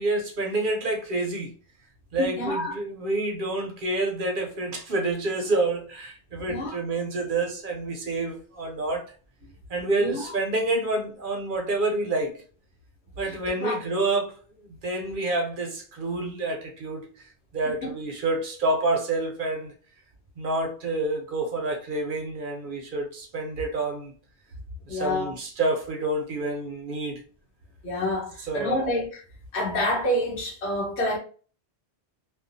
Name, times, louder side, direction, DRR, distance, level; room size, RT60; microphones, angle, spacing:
voice 1, 0.0-1.5 2.1-9.0 9.7-12.4 13.2-14.4 14.8-17.1 17.5-19.7 20.4-24.1 24.9-27.2 28.4-28.9, right 2 dB, 55° right, 0.7 m, -28 dB
voice 2, 2.2-2.8 6.4-6.8 10.0-10.2 13.2-13.3 13.6-13.8 17.8-17.9 24.9-25.4 27.8-29.2 29.5-31.2, left 1 dB, 80° left, 1.3 m, -28 dB
2.5 x 2.3 x 2.5 m
omnidirectional pair, 1.1 m